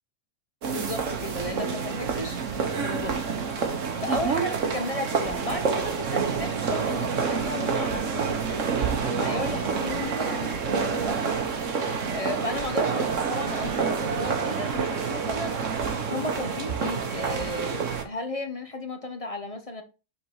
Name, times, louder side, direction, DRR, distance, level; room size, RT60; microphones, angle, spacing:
sound 1, 0.6-18.0, right 5 dB, 65° right, 1.4 m, -28 dB
voice 1, 0.7-3.6 4.0-15.6 16.1-19.8, left 2 dB, 30° left, 0.8 m, -34 dB
sound 2, 5.9-15.7, right 7 dB, 90° right, 1.3 m, -39 dB
6.3 x 4.4 x 4.7 m
omnidirectional pair, 1.5 m